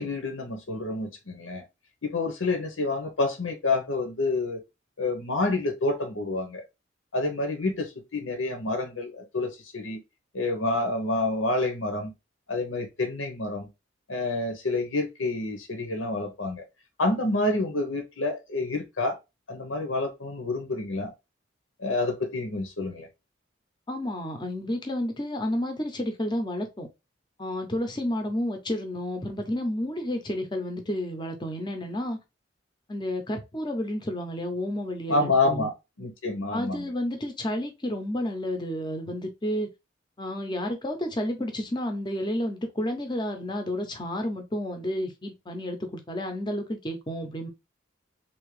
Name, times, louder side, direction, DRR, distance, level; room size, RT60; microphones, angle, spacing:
voice 1, 0.0-1.6 2.0-4.6 5.0-6.6 7.1-10.0 10.3-12.1 12.5-13.7 14.1-16.6 17.0-19.2 19.5-21.1 21.8-23.1 35.1-35.7 36.0-36.9, left 2 dB, 85° left, 0.9 m, -28 dB
voice 2, 23.9-26.9 27.4-32.2 32.9-35.7 36.5-39.7 40.2-47.5, left 1 dB, 20° left, 0.7 m, -31 dB
3.5 x 2.8 x 3.2 m
head